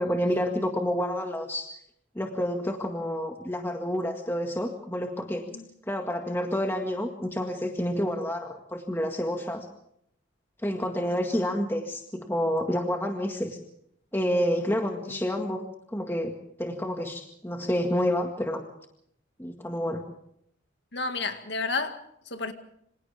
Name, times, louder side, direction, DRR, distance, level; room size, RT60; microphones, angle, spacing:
voice 1, 0.0-1.7 2.2-5.5 5.9-9.7 10.6-13.6 14.1-15.6 15.9-18.6 19.4-20.0, equal, 10° left, 2 dB, 1.9 m, -29 dB
voice 2, 20.9-22.0 22.3-22.5, left 3 dB, 60° left, 7 dB, 2.1 m, -31 dB
27.5 x 26.0 x 3.6 m, 0.71 s
head